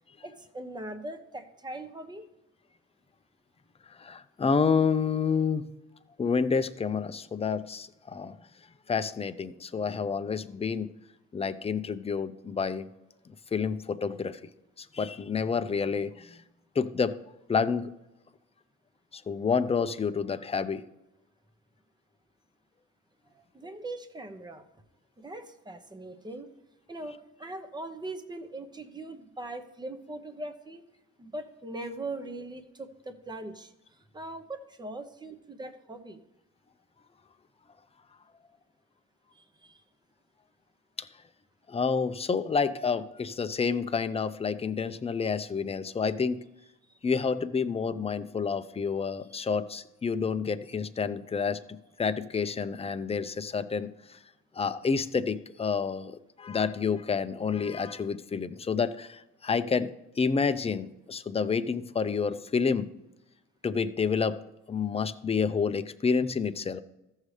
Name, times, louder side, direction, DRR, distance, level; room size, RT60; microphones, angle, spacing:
voice 1, 0.2-2.3 23.3-24.7 25.2-26.5 26.9-30.9 31.2-36.2 39.3-39.8 49.3-49.4, right 2 dB, 15° right, 8 dB, 0.9 m, -41 dB
voice 2, 4.0-5.7 6.2-8.3 8.9-10.9 11.3-12.9 13.5-14.4 14.8-16.4 16.8-17.2 17.5-17.9 19.1-20.8 41.0-41.1 41.7-46.4 47.0-51.6 52.0-54.2 54.6-62.9 63.6-64.4 64.7-66.8, left 5 dB, 20° left, 11 dB, 0.5 m, -29 dB
14.5 x 6.4 x 3.3 m, 0.91 s
cardioid pair, 90°, 30 cm